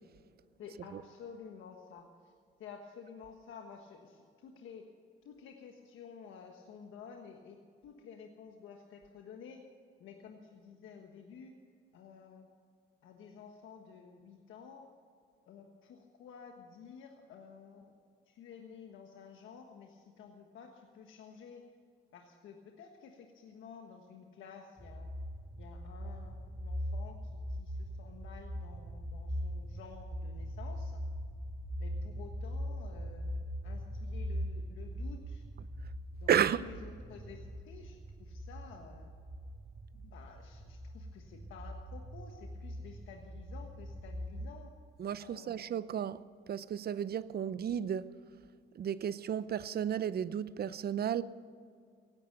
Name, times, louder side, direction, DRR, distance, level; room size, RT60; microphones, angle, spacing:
voice 1, 0.6-2.3 2.6-4.9 5.2-9.6 10.0-11.5 11.9-12.5 13.0-14.9 15.5-17.9 18.3-21.6 22.1-25.1 25.5-31.0 31.8-35.4 36.2-39.1 39.9-44.7 45.2-45.9 47.3-47.5, left 6 dB, 80° left, 1.4 m, -52 dB
sound 1, 24.8-44.5, equal, 20° right, 2.1 m, -41 dB
voice 2, 36.3-36.6 45.0-48.1 48.7-51.2, right 9 dB, 50° right, 0.6 m, -33 dB
16.5 x 11.5 x 6.7 m
cardioid pair, 90°, 20 cm